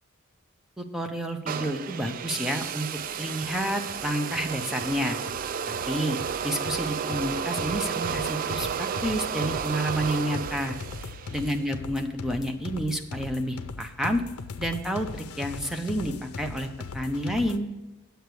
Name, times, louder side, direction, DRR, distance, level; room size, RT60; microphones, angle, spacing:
voice 1, 0.8-5.2 5.9-6.2 6.4-10.8 11.3-14.2 14.6-16.7 16.9-17.7, equal, ahead, 4 dB, 0.7 m, -29 dB
sound 1, 1.5-11.6, right 7 dB, 40° right, 0.3 m, -32 dB
sound 2, 2.5-2.6 3.0-17.6, left 4 dB, 90° left, 0.6 m, -40 dB
8.7 x 8.0 x 4.8 m, 1.1 s
head